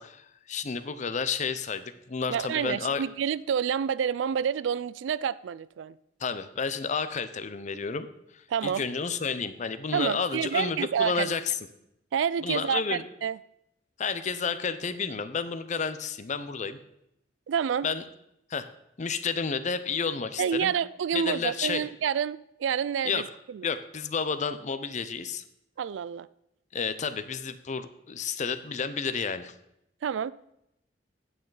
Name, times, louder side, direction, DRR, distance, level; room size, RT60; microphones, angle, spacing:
voice 1, 0.0-3.0 6.2-8.1 8.3-11.4 12.4-13.0 14.0-16.8 17.8-18.0 18.5-18.7 19.0-20.7 21.1-21.9 23.0-23.3 23.6-25.4 26.7-29.5, left 5 dB, 40° left, 12 dB, 0.6 m, -31 dB
voice 2, 2.3-6.0 8.5-8.9 9.9-11.3 12.1-13.4 17.5-17.9 20.4-23.8 25.8-26.3 30.0-30.3, right 8 dB, 85° right, 18 dB, 0.3 m, -28 dB
9.1 x 8.7 x 3.9 m, 0.80 s
head